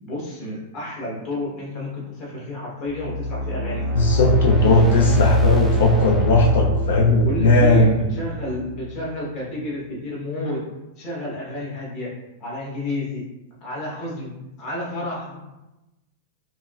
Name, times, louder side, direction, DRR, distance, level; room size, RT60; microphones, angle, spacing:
voice 1, 0.0-3.9 7.1-10.6 11.0-12.1 12.4-13.2 13.6-14.3 14.6-15.4, left 1 dB, 30° left, -5 dB, 1.1 m, -30 dB
sound 1, 2.9-9.1, left 1 dB, ahead, 0.4 m, -24 dB
voice 2, 3.9-8.0, left 2 dB, 85° left, 0 dB, 0.5 m, -17 dB
5.5 x 2.0 x 2.4 m, 1.0 s
supercardioid pair, 165°, 0 cm